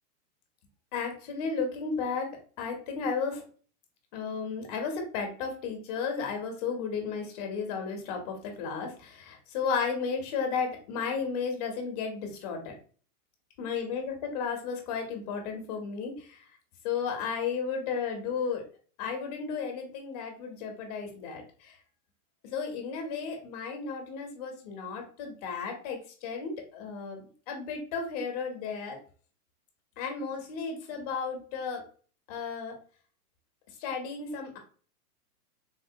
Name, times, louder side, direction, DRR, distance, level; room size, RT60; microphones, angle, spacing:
voice 1, 0.9-3.4 4.1-12.7 13.6-16.4 16.8-18.6 19.0-21.8 22.4-29.0 30.0-31.8 32.3-32.8 33.8-34.6, left 5 dB, 25° left, 4 dB, 0.5 m, -34 dB
3.7 x 2.0 x 2.6 m, 0.42 s
hypercardioid pair, 145°, 46 cm